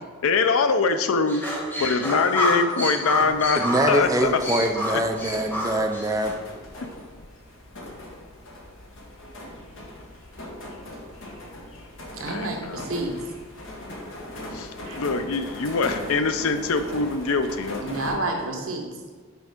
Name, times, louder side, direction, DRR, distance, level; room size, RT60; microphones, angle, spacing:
voice 1, 0.2-1.4 1.8-4.4 4.9-5.0 6.8-6.9 12.2-12.9 14.5-17.8, left 4 dB, 90° left, 9 dB, 0.5 m, -24 dB
sound 1, 1.3-6.3, equal, 10° left, 0.9 m, -28 dB
sound 2, 3.1-18.2, left 1 dB, 65° left, 1.2 m, -40 dB
voice 2, 3.6-6.3, right 1 dB, 15° right, 3 dB, 0.4 m, -24 dB
voice 3, 12.1-13.1 14.9-15.0 17.8-18.9, right 2 dB, 85° right, 2 dB, 1.0 m, -29 dB
6.0 x 5.3 x 3.5 m, 1.5 s
head